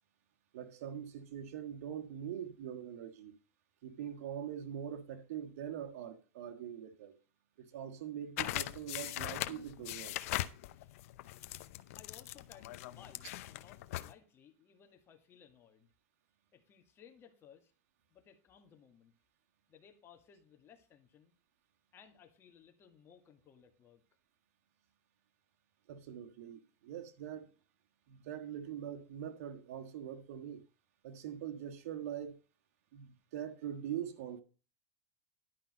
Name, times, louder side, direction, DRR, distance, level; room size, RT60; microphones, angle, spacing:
voice 1, 0.5-3.3 3.8-7.2 7.6-10.2 25.9-27.5 28.1-30.6 31.0-32.4 32.9-34.4, right 9 dB, 80° right, 1.5 m, -43 dB
sound 1, 8.4-14.1, left 16 dB, 70° left, 0.7 m, -40 dB
voice 2, 10.6-10.9 11.9-15.9 16.5-17.7 18.1-19.1 19.7-21.4 21.9-24.0, left 8 dB, 30° left, 2.1 m, -60 dB
11.0 x 5.6 x 5.1 m
supercardioid pair, 130°, 8 cm